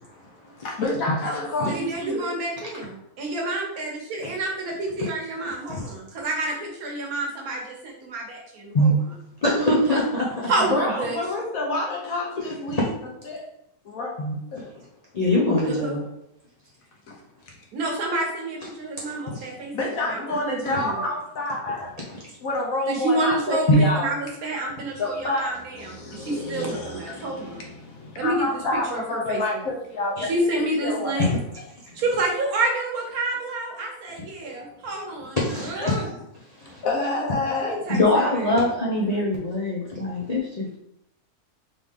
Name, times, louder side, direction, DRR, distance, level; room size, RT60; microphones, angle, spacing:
voice 1, 0.3-2.3 10.6-12.9 13.2-13.4 13.8-14.1 14.5-14.7 17.1-17.2 19.7-21.9 22.4-24.1 25.0-30.3 30.8-31.3 31.9-32.0 34.4-34.5 36.6-37.7, left 2 dB, 65° left, 0 dB, 1.3 m, -28 dB
voice 2, 1.7-8.9 9.9-10.0 10.5-11.1 15.7-16.0 17.7-19.7 20.1-21.0 22.9-27.6 28.2-28.5 28.7-29.4 30.2-31.3 31.9-35.4 35.6-36.1 37.4-38.5, right 2 dB, 70° right, 0 dB, 1.5 m, -29 dB
voice 3, 9.4-10.3 12.7-12.8 14.2-14.3 15.1-16.0 19.3-19.5 20.7-20.8 21.7-21.9 23.7-23.9 30.2-30.3 31.2-31.6 35.4-36.2 36.7-36.8 37.9-40.8, left 1 dB, 45° left, -4 dB, 0.5 m, -23 dB
4.0 x 3.3 x 3.6 m, 0.78 s
omnidirectional pair, 1.7 m